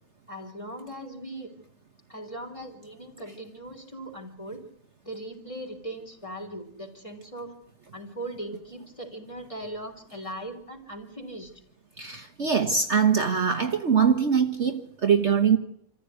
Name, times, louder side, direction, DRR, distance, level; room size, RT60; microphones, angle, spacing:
voice 1, 0.3-1.7 2.1-4.7 5.0-7.5 7.9-11.5, right 1 dB, 20° left, 3 dB, 3.7 m, -39 dB
voice 2, 12.0-15.6, right 6 dB, 50° right, 4 dB, 1.4 m, -23 dB
26.5 x 15.0 x 9.5 m, 0.70 s
omnidirectional pair, 1.6 m